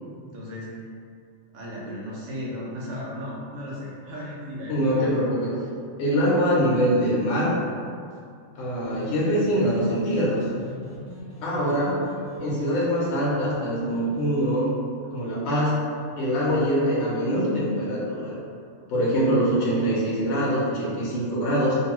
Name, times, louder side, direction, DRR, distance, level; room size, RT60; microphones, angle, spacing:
voice 1, 0.3-0.9 1.5-5.1, equal, 75° right, -6 dB, 1.0 m, -35 dB
voice 2, 4.7-5.5 6.0-7.6 8.6-10.5 11.4-12.0 12.4-14.7 15.1-15.8 16.2-18.3 18.9-21.7, equal, 65° left, -6 dB, 0.9 m, -23 dB
sound 1, 8.9-14.5, left 1 dB, 25° left, 0.6 m, -41 dB
2.6 x 2.2 x 2.9 m, 2.3 s
omnidirectional pair, 1.4 m